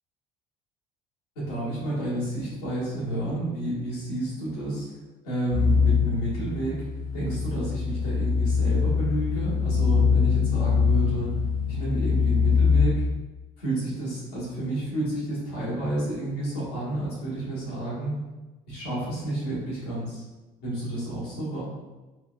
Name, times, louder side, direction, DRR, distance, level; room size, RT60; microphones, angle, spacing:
voice 1, 1.3-4.9 5.2-6.9 7.1-11.3 11.7-13.0 13.6-18.1 18.7-20.2 20.6-21.6, right 1 dB, 80° left, -8 dB, 1.4 m, -30 dB
sound 1, 5.5-12.8, left 5 dB, 40° left, 0.8 m, -23 dB
3.7 x 2.8 x 2.2 m, 1.2 s
hypercardioid pair, 60°, 20 cm